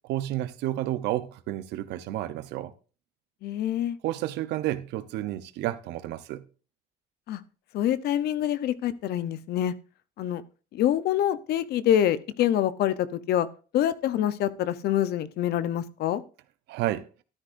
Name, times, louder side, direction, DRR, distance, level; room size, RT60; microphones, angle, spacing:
voice 1, 0.1-2.7 4.0-6.4 16.7-17.0, right 14 dB, 85° right, 0.8 m, -31 dB
voice 2, 3.4-4.0 7.3-7.4 7.7-9.7 10.2-10.4 10.7-13.5 13.7-16.2, left 11 dB, 70° left, 0.8 m, -26 dB
12.5 x 9.9 x 2.6 m
cardioid pair, 110°, 17 cm